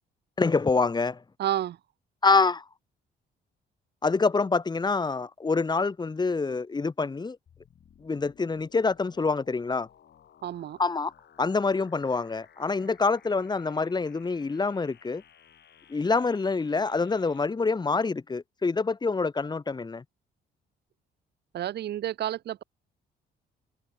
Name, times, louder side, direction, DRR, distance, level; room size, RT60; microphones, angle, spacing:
voice 1, 0.4-1.2 2.2-2.6 4.0-7.4 8.0-9.9 10.8-11.1 11.4-15.2 15.9-20.0, left 4 dB, 20° left, 0.9 m, -26 dB
voice 2, 1.4-1.8 10.4-10.8 21.5-22.6, right 12 dB, 55° right, 0.6 m, -30 dB
sound 1, 7.5-17.5, left 8 dB, 60° left, 6.7 m, -57 dB
cardioid pair, 90°, 20 cm